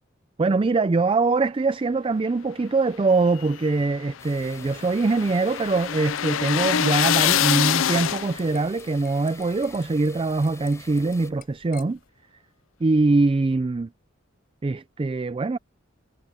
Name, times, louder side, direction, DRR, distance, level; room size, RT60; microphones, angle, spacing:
voice 1, 0.4-12.0 12.8-13.9 14.6-15.6, right 3 dB, 25° right, 0.4 m, -23 dB
sound 1, 3.1-8.6, left 10 dB, 85° left, 0.5 m, -25 dB
sound 2, 4.2-11.3, left 3 dB, 15° left, 3.8 m, -47 dB
sound 3, 6.1-12.1, left 10 dB, 50° left, 4.1 m, -52 dB
head